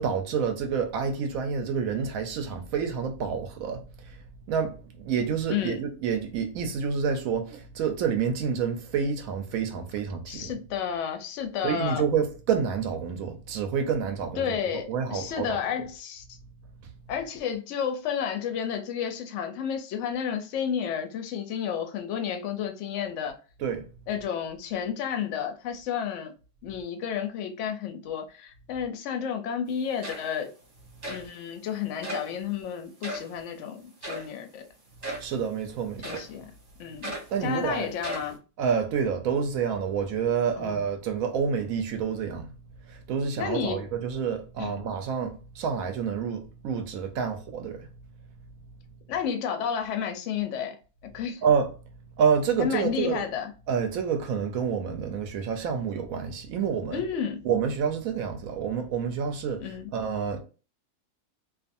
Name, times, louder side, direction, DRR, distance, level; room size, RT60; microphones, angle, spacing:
voice 1, 0.0-10.6 11.6-14.6 14.9-15.6 16.8-16.9 23.6-23.9 35.2-36.3 37.3-37.9 38.6-42.5 42.8-47.9 51.4-51.7 52.2-53.2 53.7-57.0 57.4-60.4, right 6 dB, 70° right, 0.9 m, -28 dB
voice 2, 5.5-5.8 10.3-12.0 14.4-16.2 17.1-23.4 24.1-26.3 26.6-30.5 31.1-34.6 36.0-36.5 36.8-37.1 37.4-38.4 40.6-40.8 43.4-43.8 44.6-44.8 49.1-50.8 51.0-51.4 52.6-53.5 56.9-57.5 59.6-59.9, left 8 dB, 65° left, 0.8 m, -31 dB
sound 1, 29.7-29.8 30.0-30.5 31.0-31.3 32.0-32.3 33.0-33.3 34.0-34.3 35.0-35.3 36.0-36.4 37.0-37.4 38.0-38.4, right 1 dB, 30° right, 0.9 m, -36 dB
2.4 x 2.4 x 2.5 m
omnidirectional pair, 1.6 m